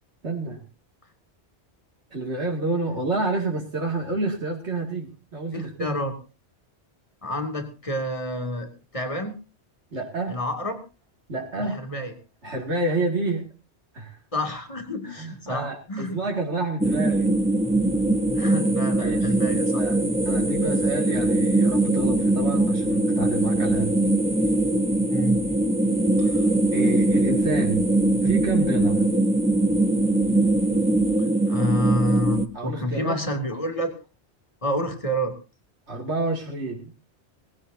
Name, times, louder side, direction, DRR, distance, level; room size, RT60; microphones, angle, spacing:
voice 1, 0.2-0.6 2.1-6.0 9.9-10.4 11.3-11.8 12.4-13.5 13.9-14.2 15.1-17.3 19.0-19.3 19.8-20.0 20.2-24.0 26.7-27.8 28.2-29.1 32.5-33.2 35.9-36.9, right 2 dB, 80° right, -1 dB, 2.7 m, -29 dB
voice 2, 5.5-6.1 7.2-9.3 10.3-10.8 11.7-12.1 14.3-16.2 18.3-19.8 25.1-25.4 26.2-26.5 31.4-33.9 34.6-35.4, left 1 dB, 30° left, 4 dB, 2.6 m, -29 dB
sound 1, 16.8-32.5, right 2 dB, 5° right, 0.7 m, -21 dB
19.5 x 16.5 x 2.7 m, 0.31 s
omnidirectional pair, 1.1 m